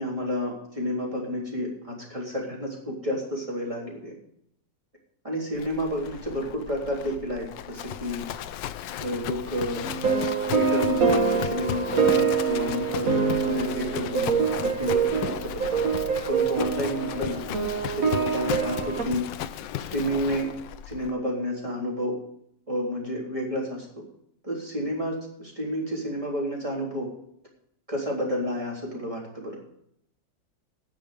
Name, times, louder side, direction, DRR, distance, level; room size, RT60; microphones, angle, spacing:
voice 1, 0.0-4.1 5.2-8.2 9.0-9.8 10.5-13.1 13.4-15.8 16.3-17.4 17.9-19.2 19.9-20.5 20.9-22.2 22.7-23.9 24.4-27.1 27.9-29.6, equal, 15° right, -3 dB, 3.7 m, -30 dB
Livestock farm animals working animals, 5.6-21.1, left 11 dB, 80° left, 1.3 m, -36 dB
sound 1, 9.8-19.0, right 5 dB, 50° right, 1.8 m, -25 dB
18.5 x 6.4 x 5.0 m, 0.72 s
omnidirectional pair, 2.0 m